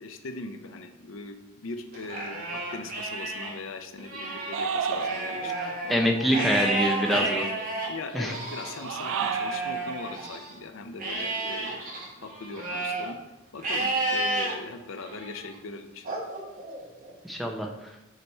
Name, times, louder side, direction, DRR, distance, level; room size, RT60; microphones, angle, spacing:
voice 1, 0.0-5.6 5.8-6.5 7.1-7.5 7.9-11.8 12.2-13.2 13.5-16.2, left 3 dB, 70° left, 7 dB, 0.5 m, -40 dB
Livestock farm animals working animals, 1.9-3.5 4.0-10.5 11.0-13.1 13.6-14.5 15.1-15.5 16.0-17.1, right 2 dB, 45° right, 1.3 m, -32 dB
sound 1, 4.5-5.6 8.7-9.7, right 6 dB, 70° right, 0.3 m, -31 dB
voice 2, 5.9-7.4 8.1-8.3 17.2-17.7, equal, ahead, 1 dB, 0.6 m, -25 dB
6.7 x 3.4 x 4.3 m, 1.0 s
head